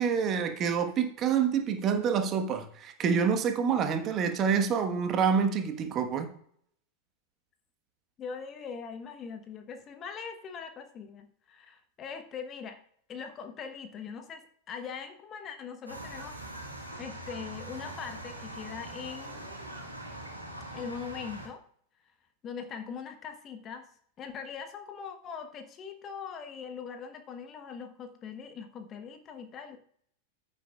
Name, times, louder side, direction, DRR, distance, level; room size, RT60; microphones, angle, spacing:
voice 1, 0.0-6.3, right 6 dB, 30° right, 1.3 m, -27 dB
voice 2, 8.2-12.8 13.1-16.4 17.0-19.5 20.7-21.6 22.4-23.9 24.2-29.8, left 6 dB, 30° left, 1.1 m, -41 dB
sound 1, 15.9-21.5, right 1 dB, 85° right, 2.0 m, -42 dB
14.5 x 7.2 x 2.4 m
figure-of-eight pair, 90°, 0 cm